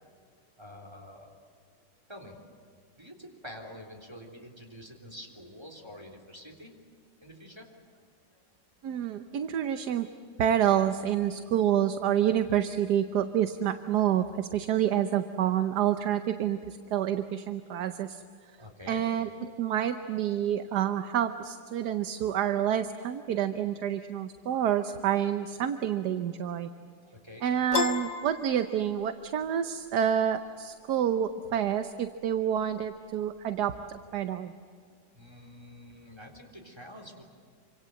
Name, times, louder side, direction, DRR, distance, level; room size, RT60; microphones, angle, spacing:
voice 1, 0.5-1.3 2.1-2.4 3.0-6.7 7.2-8.0 8.3-8.4 9.0-9.1 18.6-19.1 27.1-27.5 35.1-37.2, equal, 15° right, 1 dB, 3.5 m, -47 dB
voice 2, 8.8-10.1 10.4-18.2 18.9-26.7 27.4-34.5, right 10 dB, 65° right, 9 dB, 1.4 m, -28 dB
Piano, 27.7-29.3, left 6 dB, 70° left, 2.2 m, -32 dB
27.5 x 25.5 x 7.7 m, 2.1 s
omnidirectional pair, 1.9 m